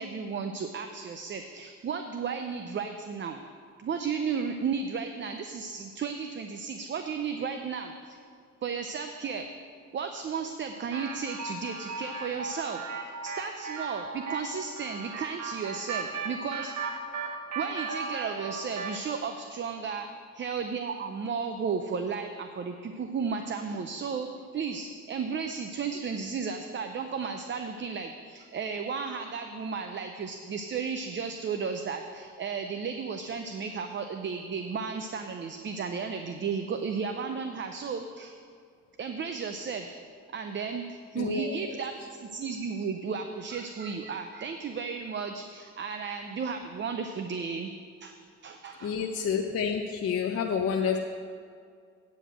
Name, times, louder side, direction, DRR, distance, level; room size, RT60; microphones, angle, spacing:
voice 1, 0.0-3.4 3.8-8.2 8.6-9.5 9.9-16.7 17.6-20.1 20.3-38.3 39.0-40.0 40.3-41.9 42.2-47.7 48.0-48.2 48.4-49.1, right 5 dB, 40° right, 6 dB, 0.6 m, -34 dB
sound 1, 10.9-19.1, right 4 dB, 65° right, 1.3 m, -37 dB
voice 2, 41.2-41.8 48.8-51.0, left 6 dB, 50° left, 2 dB, 0.7 m, -29 dB
9.2 x 5.0 x 7.8 m, 2.2 s
cardioid pair, 90°, 30 cm